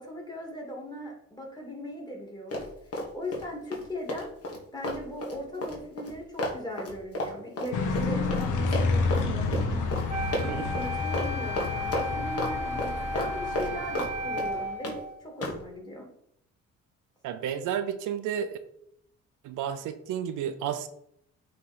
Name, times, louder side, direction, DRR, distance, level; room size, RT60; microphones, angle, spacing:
voice 1, 0.0-2.7 3.0-4.3 4.7-9.9 10.4-16.1, left 1 dB, 15° left, -1 dB, 2.5 m, -39 dB
Run, 2.5-3.4 3.7-8.5 8.7-9.3 9.5-9.7 9.9-10.1 10.3-10.9 11.1-11.3 11.6-12.5 12.8-14.1 14.4-15.0 15.4-15.6, left 1 dB, 50° left, 1.9 m, -32 dB
sound 1, 7.7-14.7, left 3 dB, 80° left, 1.2 m, -30 dB
Wind instrument woodwind instrument, 10.1-15.2, equal, 25° right, 1.1 m, -34 dB
voice 2, 17.2-18.6 19.4-20.9, right 9 dB, 90° right, 9 dB, 0.7 m, -31 dB
8.5 x 3.4 x 4.4 m, 0.71 s
cardioid pair, 90°, 30 cm